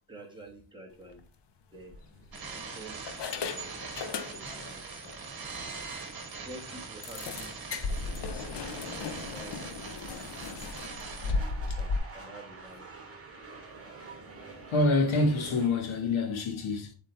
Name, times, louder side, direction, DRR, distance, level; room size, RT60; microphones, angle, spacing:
voice 1, 0.1-1.3 1.7-2.0 2.3-3.2 3.5-3.7 4.3-5.1 5.6-5.9 6.4-7.6 8.1-10.3 11.1-13.1, right 1 dB, 10° right, 1.7 m, -49 dB
sound 1, 1.0-1.2 1.9-2.6 3.1-4.7 5.0-5.2 5.6-5.7 6.0-6.1 7.0-12.0, left 4 dB, 60° left, 0.9 m, -36 dB
sound 2, 1.7-15.7, right 4 dB, 30° right, 2.4 m, -50 dB
sound 3, 2.3-11.3, right 4 dB, 50° right, 1.7 m, -42 dB
voice 2, 14.7-16.9, left 2 dB, 85° left, 1.6 m, -26 dB
7.7 x 4.1 x 3.4 m
wide cardioid pair, 150°, 47 cm